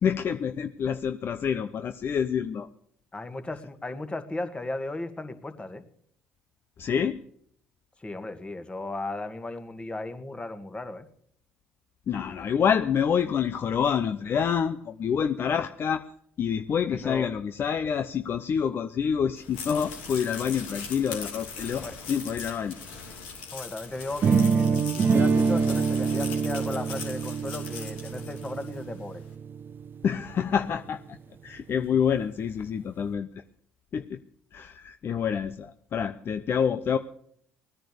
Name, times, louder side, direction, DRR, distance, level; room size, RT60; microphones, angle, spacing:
voice 1, 0.0-2.7 6.8-7.2 12.1-16.0 16.4-22.8 30.0-31.2 31.4-33.3 33.9-34.2 34.5-37.0, left 7 dB, 50° left, 9 dB, 0.7 m, -27 dB
voice 2, 3.1-5.8 8.0-11.1 17.0-17.3 21.8-22.0 23.5-29.2, left 2 dB, 20° left, 8 dB, 2.0 m, -35 dB
sound 1, 19.4-28.9, left 5 dB, 85° left, 3.1 m, -40 dB
sound 2, 24.2-30.1, right 5 dB, 45° right, 0.9 m, -25 dB
17.5 x 10.0 x 6.9 m, 0.64 s
hypercardioid pair, 60°, 5 cm